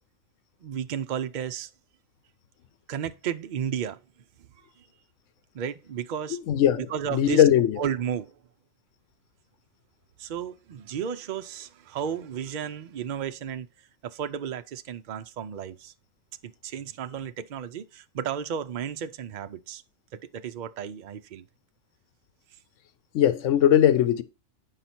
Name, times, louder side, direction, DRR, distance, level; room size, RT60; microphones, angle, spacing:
voice 1, 0.6-1.7 2.9-4.0 5.5-6.4 6.8-7.4 7.8-8.3 10.2-13.7 14.0-15.9 16.4-19.8 20.1-21.4, right 8 dB, 70° right, 0.4 m, -33 dB
voice 2, 6.5-7.8 23.1-24.2, left 10 dB, 70° left, 1.1 m, -20 dB
9.2 x 5.7 x 4.2 m
omnidirectional pair, 1.4 m